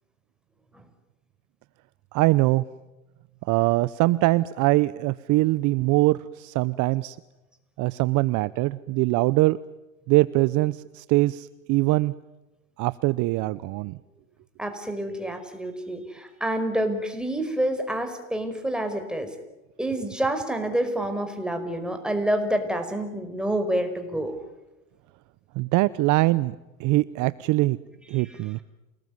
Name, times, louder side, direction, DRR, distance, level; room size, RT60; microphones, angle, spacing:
voice 1, 2.1-2.6 3.5-7.2 7.8-9.6 10.1-12.1 12.8-14.0 25.6-27.8 28.1-28.6, right 19 dB, 50° right, 17 dB, 0.8 m, -22 dB
voice 2, 14.6-19.3 19.8-24.3 28.2-28.4, right 1 dB, ahead, 6 dB, 5.2 m, -28 dB
28.5 x 20.0 x 9.6 m, 1.0 s
hypercardioid pair, 105°, 39 cm